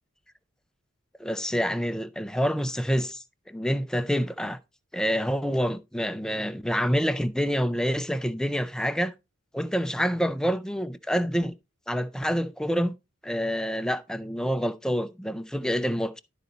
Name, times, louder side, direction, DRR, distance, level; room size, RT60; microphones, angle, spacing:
voice 1, 1.2-4.6 4.9-9.1 9.5-11.5 11.9-12.9 13.2-16.2, equal, 5° left, 0.5 m, -27 dB
12.0 x 4.0 x 4.1 m
head